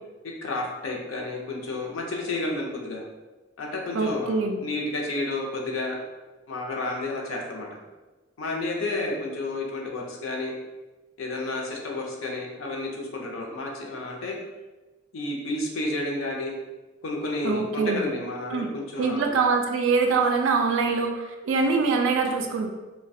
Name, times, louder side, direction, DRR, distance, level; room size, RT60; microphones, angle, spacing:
voice 1, 0.2-3.0 3.6-6.0 6.5-7.7 8.4-10.5 11.2-14.4 15.1-16.6 17.0-19.3, left 2 dB, 90° left, 0 dB, 0.5 m, -31 dB
voice 2, 3.9-4.6 17.4-18.0 18.5-18.7 19.0-22.7, right 4 dB, 75° right, 3 dB, 0.3 m, -24 dB
2.3 x 2.1 x 2.6 m, 1.2 s
head